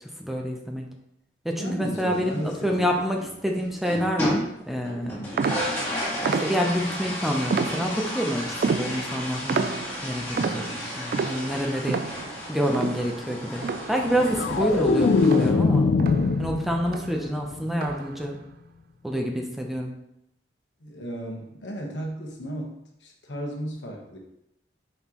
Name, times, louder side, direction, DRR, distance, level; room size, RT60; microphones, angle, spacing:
voice 1, 0.2-0.9 1.4-4.4 4.7-5.2 6.2-9.8 10.0-12.0 12.5-15.9 16.4-18.4 19.0-19.9, equal, ahead, 1 dB, 0.6 m, -27 dB
voice 2, 1.6-3.0 5.0-5.4 10.3-10.8 20.8-24.2, equal, 85° left, 0 dB, 1.1 m, -35 dB
sound 1, 2.0-3.4 3.7-4.6 4.8-15.5, left 1 dB, 15° left, 1.8 m, -33 dB
sound 2, 5.4-7.0 7.5-8.2 8.6-14.2 14.5-16.5 16.9-17.3 17.8-18.2, right 5 dB, 55° right, 0.3 m, -31 dB
sound 3, 14.0-17.2 17.5-17.9, left 4 dB, 50° left, 0.3 m, -22 dB
6.1 x 5.5 x 3.0 m, 0.82 s
head